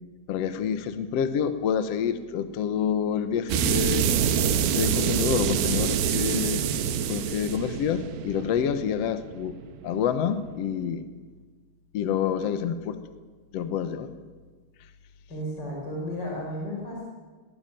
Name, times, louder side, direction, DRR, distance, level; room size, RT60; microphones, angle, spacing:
voice 1, 0.3-4.1 4.7-6.6 7.1-9.5 9.8-11.0 11.9-12.9 13.5-14.1, left 8 dB, 80° left, 10 dB, 1.4 m, -27 dB
sound 1, 3.5-10.0, right 8 dB, 75° right, 3.1 m, -26 dB
voice 2, 15.3-17.1, equal, 25° left, -2 dB, 5.4 m, -33 dB
21.0 x 17.0 x 9.3 m, 1.4 s
omnidirectional pair, 4.7 m